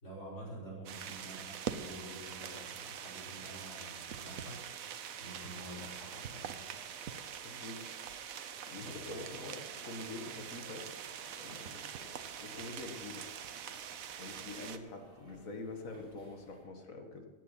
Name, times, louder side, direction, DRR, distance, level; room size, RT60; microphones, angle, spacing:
voice 1, 0.0-6.6 8.8-9.2, right 1 dB, 60° left, -6 dB, 5.4 m, -48 dB
sound 1, 0.9-14.8, right 8 dB, 85° right, 1.2 m, -44 dB
sound 2, 1.1-15.4, right 1 dB, 55° right, 4.3 m, -61 dB
voice 2, 7.4-7.8 8.7-10.9 11.4-13.3 14.2-17.3, left 2 dB, 80° left, 3 dB, 2.1 m, -46 dB
sound 3, 9.7-16.6, equal, 25° right, 5.1 m, -60 dB
15.5 x 9.0 x 5.7 m, 1.3 s
omnidirectional pair, 1.4 m